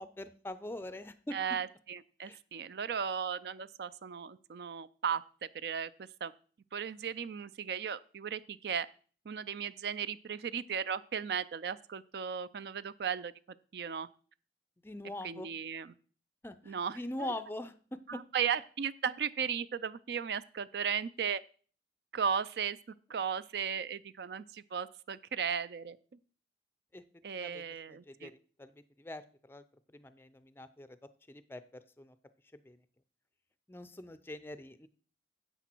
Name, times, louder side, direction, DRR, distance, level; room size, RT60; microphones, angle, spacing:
voice 1, 0.0-1.4 2.2-2.4 14.8-15.5 16.4-17.7 26.9-27.0 27.4-27.6 28.1-28.3 28.6-28.7 29.0-29.2 29.5-29.6 29.9-30.9 31.3-32.1 32.7-32.8 33.7-34.9, left 1 dB, 10° left, 13 dB, 0.4 m, -43 dB
voice 2, 1.3-5.9 6.2-6.3 6.7-8.9 9.3-13.3 13.7-14.1 15.2-15.9 16.6-17.3 18.1-21.4 22.1-22.8 23.1-26.0 27.2-28.3, right 7 dB, 60° right, 16 dB, 0.4 m, -36 dB
10.0 x 8.1 x 4.5 m, 0.42 s
head